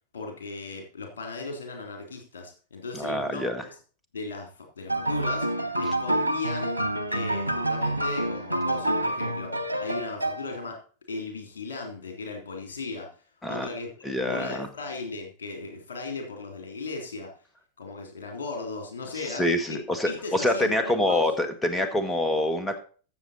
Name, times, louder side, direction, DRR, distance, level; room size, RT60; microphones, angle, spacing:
voice 1, 0.1-3.5 4.1-4.5 4.8-6.8 7.1-9.5 9.8-10.8 11.1-13.1 13.5-17.3 17.8-19.8 20.0-21.2, left 3 dB, 65° left, 3 dB, 3.2 m, -37 dB
voice 2, 2.9-3.6 13.4-13.7 14.0-14.7 19.2-22.8, left 1 dB, 10° left, 8 dB, 1.7 m, -26 dB
sound 1, 4.9-10.7, right 1 dB, 90° left, 0.9 m, -28 dB
13.5 x 7.1 x 4.3 m, 0.41 s
figure-of-eight pair, 90°, 0 cm